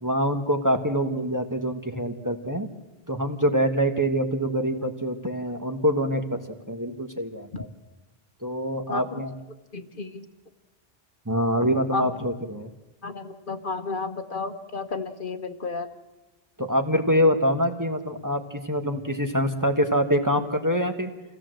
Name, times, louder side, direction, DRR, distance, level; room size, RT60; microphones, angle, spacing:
voice 1, 0.0-2.7 3.1-6.4 6.7-7.7 8.4-9.3 11.2-12.7 16.6-21.1, equal, 20° right, 5 dB, 1.4 m, -25 dB
voice 2, 9.7-10.2 11.9-12.1 13.0-15.9, left 4 dB, 55° left, 8 dB, 1.3 m, -32 dB
26.0 x 17.0 x 7.8 m, 1.1 s
omnidirectional pair, 1.0 m